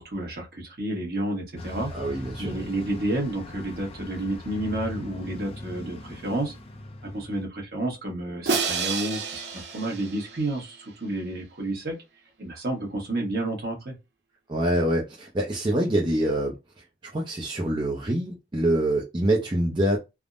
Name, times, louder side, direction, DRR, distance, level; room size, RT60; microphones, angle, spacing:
voice 1, 0.0-1.9 2.4-6.5 7.0-12.0 12.4-13.9, right 1 dB, 55° right, 1.1 m, -30 dB
Bus, 1.6-7.5, left 1 dB, 30° left, 0.4 m, -40 dB
voice 2, 1.9-2.6 14.5-16.5 17.1-20.0, right 1 dB, 25° right, 0.5 m, -25 dB
Crash cymbal, 8.5-10.7, right 5 dB, 70° right, 0.6 m, -29 dB
3.4 x 2.0 x 2.4 m
head